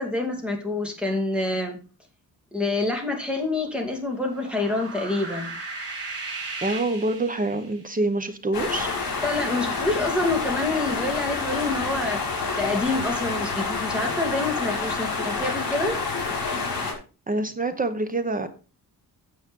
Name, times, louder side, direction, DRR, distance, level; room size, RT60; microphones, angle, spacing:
voice 1, 0.0-1.8 2.5-5.6 9.2-12.2 12.5-16.0, left 2 dB, 5° right, 1 dB, 2.4 m, -27 dB
sound 1, 4.1-7.9, right 3 dB, 40° right, 3.8 m, -36 dB
voice 2, 6.6-8.9 17.3-18.5, right 2 dB, 20° right, 9 dB, 0.9 m, -26 dB
sound 2, 8.5-16.9, left 4 dB, 65° left, 5.2 m, -28 dB
9.2 x 7.5 x 5.3 m, 0.34 s
wide cardioid pair, 165°, 38 cm